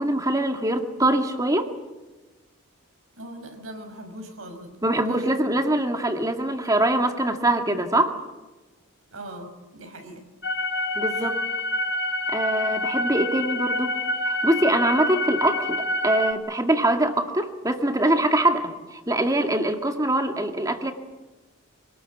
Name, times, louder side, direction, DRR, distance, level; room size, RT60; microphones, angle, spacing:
voice 1, 0.0-1.7 4.8-8.2 11.0-11.4 12.3-14.0 14.3-20.9, right 1 dB, 15° right, 5 dB, 2.0 m, -23 dB
voice 2, 3.1-5.5 9.1-10.3 11.1-11.3, right 1 dB, 85° right, 5 dB, 5.3 m, -40 dB
sound 1, 10.4-16.3, left 1 dB, 55° left, 1.7 m, -27 dB
26.5 x 19.5 x 8.3 m, 1.2 s
head